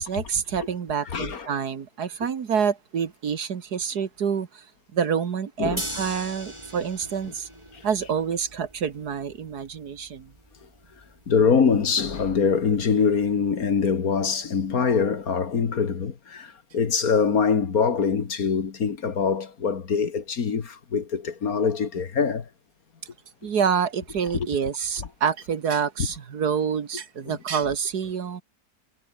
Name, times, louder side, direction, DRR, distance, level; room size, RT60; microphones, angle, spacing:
voice 1, 0.0-4.6 4.9-7.5 7.8-10.3 23.4-28.4, right 7 dB, 65° right, 2.0 m, -27 dB
voice 2, 1.1-1.5 5.6-5.9 7.7-7.8 11.3-22.5 24.3-24.5 27.3-27.4, left 6 dB, 55° left, 2.1 m, -24 dB
sound 1, 5.8-11.8, right 1 dB, 15° right, 5.9 m, -40 dB
omnidirectional pair, 1.9 m